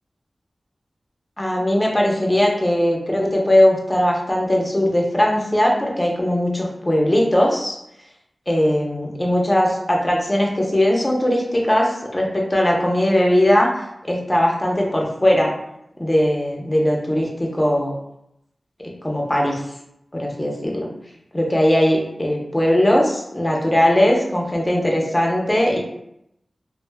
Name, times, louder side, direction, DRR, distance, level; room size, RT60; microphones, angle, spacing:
voice 1, 1.4-7.8 8.5-13.7 14.0-15.5 16.0-17.9 18.8-19.6 20.1-20.9 21.3-25.8, left 1 dB, 25° left, -2 dB, 0.8 m, -19 dB
3.3 x 2.3 x 2.2 m, 0.79 s
cardioid pair, 40°, 0 cm